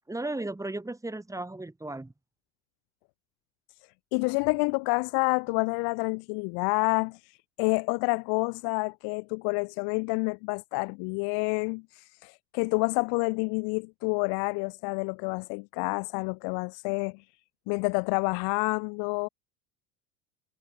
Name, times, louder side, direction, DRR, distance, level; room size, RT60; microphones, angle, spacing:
voice 1, 0.1-2.1, right 2 dB, 10° right, 3.1 m, -35 dB
voice 2, 4.1-17.3 17.7-19.3, left 35 dB, 70° left, 2.9 m, -28 dB
supercardioid pair, 105°, 40 cm